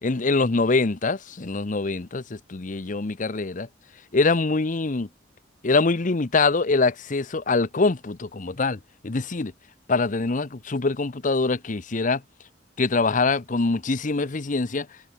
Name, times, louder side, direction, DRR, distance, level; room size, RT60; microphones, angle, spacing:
voice 1, 0.0-3.7 4.1-5.1 5.6-9.5 9.9-12.2 12.8-14.9, left 3 dB, 45° left, 0.8 m, -24 dB
head